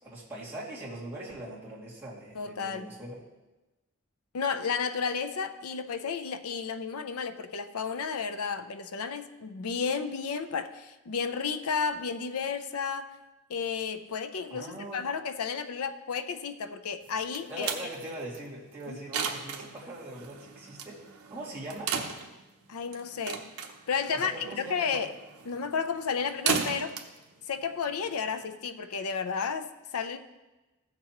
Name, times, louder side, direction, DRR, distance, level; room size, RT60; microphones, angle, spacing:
voice 1, 0.0-3.2 14.5-15.0 17.5-21.0 21.3-21.9 24.1-25.0, right 1 dB, 10° right, -8 dB, 2.4 m, -41 dB
voice 2, 2.3-2.9 4.3-13.1 13.5-17.7 18.9-19.0 22.7-23.5 23.9-25.1 25.5-26.9 27.5-30.2, left 6 dB, 85° left, 9 dB, 0.6 m, -32 dB
sound 1, 17.0-28.5, right 6 dB, 85° right, 0.9 m, -37 dB
15.5 x 6.7 x 3.0 m, 1.1 s
head